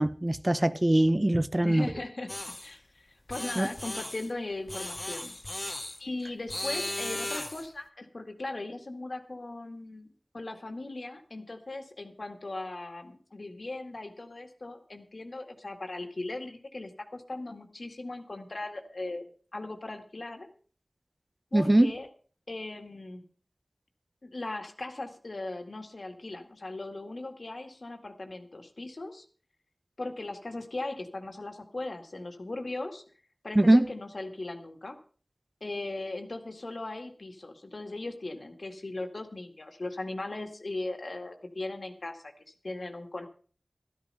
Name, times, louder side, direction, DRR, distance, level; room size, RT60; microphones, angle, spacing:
voice 1, 0.0-1.9 3.6-3.7 21.5-21.9 33.6-33.9, right 1 dB, 30° right, 0.7 m, -22 dB
voice 2, 1.6-2.3 2.6-5.4 6.0-19.2 19.5-20.5 21.5-22.1 22.5-23.2 24.2-29.3 30.0-33.0 33.4-35.0 35.6-43.3, left 2 dB, 65° left, 2.0 m, -38 dB
sound 1, 2.3-2.7 3.3-4.3 4.7-6.0 6.5-7.7, left 1 dB, 35° left, 1.1 m, -36 dB
13.5 x 12.5 x 5.5 m
wide cardioid pair, 50°, 0 cm